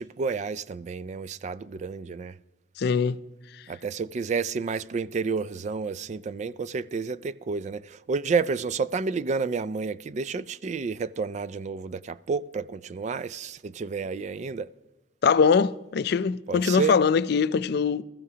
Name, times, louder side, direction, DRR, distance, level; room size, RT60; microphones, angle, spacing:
voice 1, 0.0-2.4 3.7-14.7 16.5-17.0, right 5 dB, 40° right, 0.3 m, -30 dB
voice 2, 2.8-3.2 15.2-18.0, left 5 dB, 65° left, 0.4 m, -22 dB
20.0 x 14.0 x 2.8 m
head